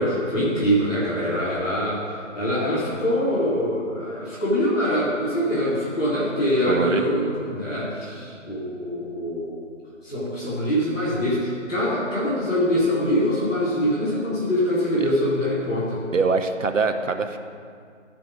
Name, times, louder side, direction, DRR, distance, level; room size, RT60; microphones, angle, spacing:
voice 1, 0.0-2.0 2.3-9.6 10.0-16.0, equal, 5° left, -17 dB, 0.9 m, -24 dB
voice 2, 6.7-7.0 15.0-15.1 16.1-17.4, right 4 dB, 80° right, 7 dB, 1.0 m, -23 dB
13.5 x 5.1 x 6.1 m, 2.2 s
figure-of-eight pair, 170°, 38 cm